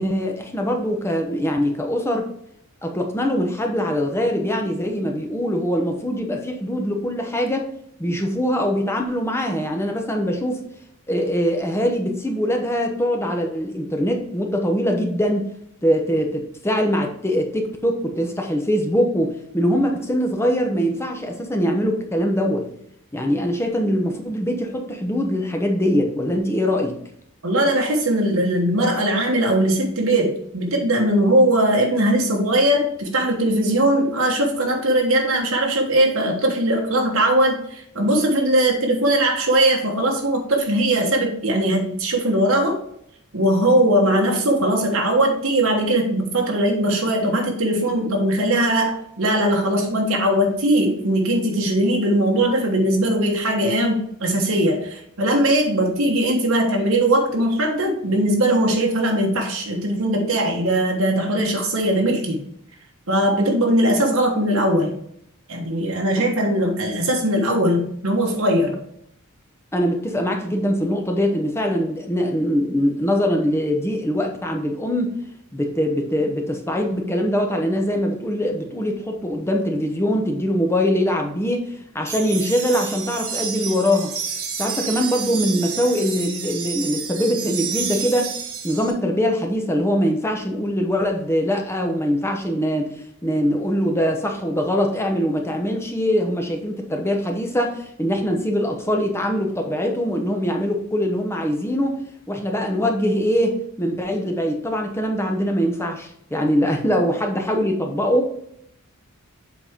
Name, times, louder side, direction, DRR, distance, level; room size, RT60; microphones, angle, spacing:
voice 1, 0.0-2.3 2.8-7.7 8.0-10.6 11.1-15.5 15.8-22.7 23.1-27.0 69.7-75.2 75.5-84.1 84.6-88.3 88.6-92.9 93.2-102.0 102.3-108.3, equal, 10° left, 3 dB, 0.9 m, -22 dB
voice 2, 27.4-42.8 43.3-62.4 63.1-64.9 65.5-68.8, right 1 dB, 65° right, 0 dB, 1.3 m, -20 dB
sound 1, 82.1-88.9, right 7 dB, 85° right, 1.5 m, -30 dB
7.6 x 4.3 x 3.6 m, 0.72 s
head